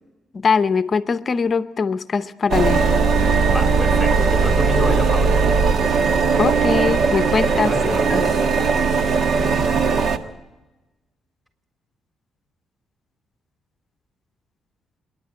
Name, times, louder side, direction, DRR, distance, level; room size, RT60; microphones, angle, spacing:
voice 1, 0.3-2.9 6.4-7.8 8.1-8.3 8.6-8.7, left 5 dB, 40° left, 12 dB, 0.7 m, -21 dB
sound 1, 2.5-10.2, right 4 dB, 65° right, 1.3 m, -18 dB
voice 2, 3.4-5.5 7.6-8.4 8.7-9.0, equal, 5° right, 3 dB, 3.8 m, -29 dB
28.5 x 10.5 x 8.8 m, 1.1 s
cardioid pair, 90°, 0 cm